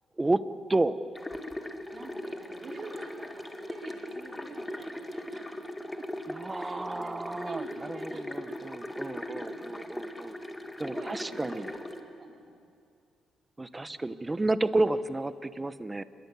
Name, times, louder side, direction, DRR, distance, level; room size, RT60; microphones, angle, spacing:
sound 1, 1.1-12.0, left 1 dB, 10° left, 2.0 m, -39 dB
voice 1, 1.9-5.5 6.5-8.5 8.9-9.9 10.8-12.6 13.7-14.0, right 3 dB, 40° right, 0 dB, 4.5 m, -46 dB
voice 2, 6.3-10.3 10.8-11.7 13.6-16.0, right 2 dB, 15° right, 13 dB, 1.0 m, -31 dB
27.5 x 22.0 x 8.4 m, 2.4 s
cardioid pair, 90°, 0 cm